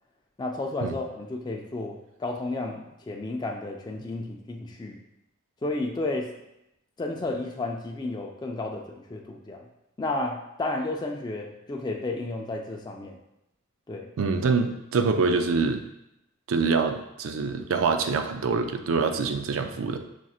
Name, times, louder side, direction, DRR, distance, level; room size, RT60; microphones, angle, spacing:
voice 1, 0.4-5.0 5.6-6.3 7.0-9.7 10.0-13.2 13.9-14.1, left 2 dB, 20° left, 0 dB, 0.3 m, -32 dB
voice 2, 14.2-15.8 16.5-20.0, right 4 dB, 65° right, 7 dB, 0.4 m, -25 dB
6.1 x 2.8 x 2.3 m, 0.86 s
head